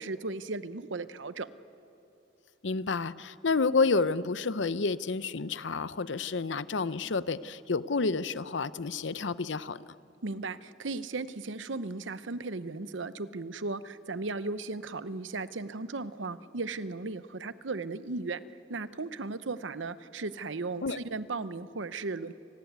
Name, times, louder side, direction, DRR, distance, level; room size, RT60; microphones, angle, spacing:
voice 1, 0.0-1.5 10.2-18.4 18.7-22.3, right 3 dB, 80° right, 14 dB, 0.9 m, -36 dB
voice 2, 2.6-9.8 20.8-21.0, left 4 dB, 70° left, 16 dB, 0.7 m, -29 dB
29.0 x 19.5 x 9.5 m, 2.8 s
head